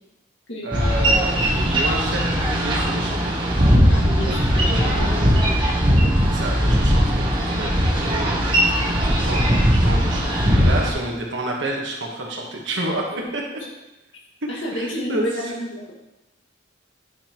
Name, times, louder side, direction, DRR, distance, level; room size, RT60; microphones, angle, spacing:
voice 1, 0.6-3.4 5.0-5.6 6.2-13.4 14.4-15.3, right 1 dB, 65° right, -1 dB, 1.3 m, -30 dB
Boat Water vehicle, 0.7-10.9, equal, 25° right, 1.1 m, -19 dB
voice 2, 3.9-5.6 8.5-9.1 14.5-15.9, equal, 70° left, -3 dB, 1.9 m, -31 dB
9.7 x 5.3 x 3.0 m, 0.97 s
head